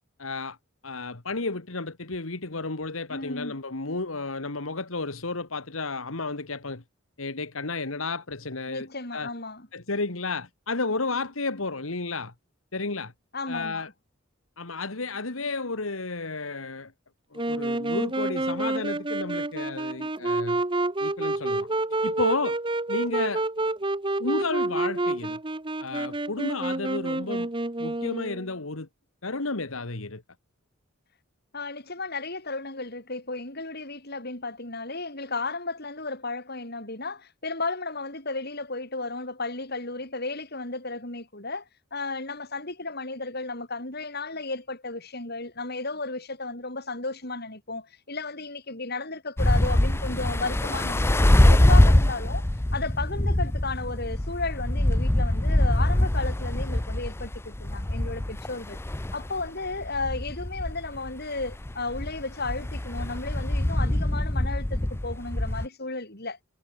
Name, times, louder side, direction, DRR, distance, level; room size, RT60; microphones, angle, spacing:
voice 1, 0.2-0.6 0.8-6.8 7.2-8.9 9.1-9.3 9.7-12.3 12.7-13.1 13.5-13.9 14.6-16.9 17.3-20.6 21.0-21.7 22.0-22.6 22.9-23.4 24.2-25.4 25.8-27.5 27.8-28.9 29.2-30.2, left 3 dB, 80° left, 2.0 m, -32 dB
voice 2, 3.1-3.5 8.7-9.7 13.3-13.9 31.5-41.6 41.9-52.5 52.7-58.8 59.1-66.4, left 3 dB, 50° left, 6.8 m, -34 dB
Wind instrument woodwind instrument, 17.4-28.5, right 2 dB, 25° right, 1.2 m, -28 dB
sound 1, 49.4-65.7, left 1 dB, 10° left, 0.5 m, -24 dB
head